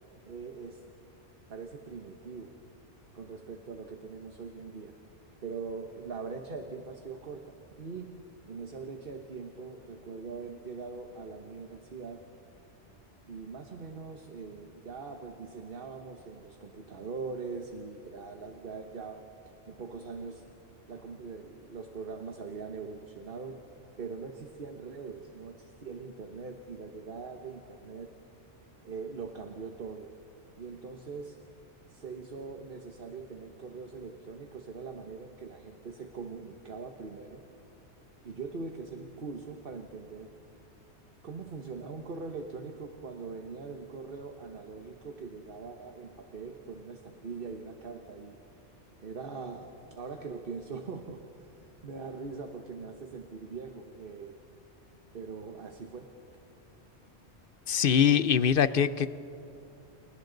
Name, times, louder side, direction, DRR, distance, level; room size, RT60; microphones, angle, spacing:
voice 1, 0.2-0.8 1.5-2.5 3.1-4.9 5.4-8.1 8.5-12.2 13.3-19.2 19.6-20.4 20.9-23.6 24.0-28.1 28.8-30.1 30.6-31.4 31.9-37.4 38.2-40.3 41.2-48.4 49.0-54.3 55.1-56.1, right 4 dB, 50° right, 5 dB, 1.3 m, -42 dB
voice 2, 57.7-59.1, left 8 dB, 55° left, 14 dB, 0.8 m, -23 dB
29.5 x 29.0 x 3.9 m, 2.6 s
omnidirectional pair, 1.2 m